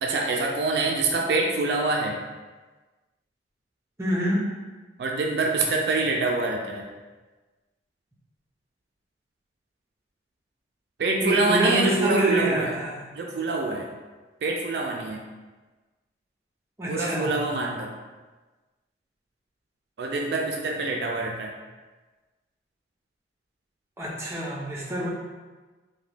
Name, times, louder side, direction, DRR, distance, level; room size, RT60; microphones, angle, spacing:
voice 1, 0.0-2.2 5.0-6.9 11.0-12.8 13.1-13.9 14.4-15.2 16.9-17.9 20.0-21.5, right 3 dB, 65° right, 1 dB, 0.3 m, -25 dB
voice 2, 4.0-4.5 11.2-13.0 16.8-17.3 24.0-25.1, right 1 dB, 15° right, -5 dB, 0.5 m, -25 dB
2.8 x 2.2 x 3.2 m, 1.3 s
head